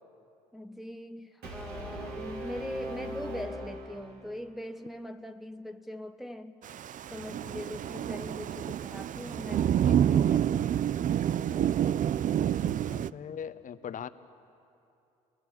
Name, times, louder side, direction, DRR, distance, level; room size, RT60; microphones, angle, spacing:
voice 1, 0.5-6.6 7.1-10.5, left 1 dB, ahead, 6 dB, 1.0 m, -41 dB
Brass instrument, 1.4-4.5, right 1 dB, 65° right, 4.3 m, -40 dB
Thunder / Rain, 6.6-13.1, right 10 dB, 45° right, 0.5 m, -28 dB
voice 2, 12.6-14.1, left 8 dB, 50° left, 12 dB, 1.1 m, -40 dB
28.5 x 22.5 x 6.5 m, 2.6 s
supercardioid pair, 70°, 18 cm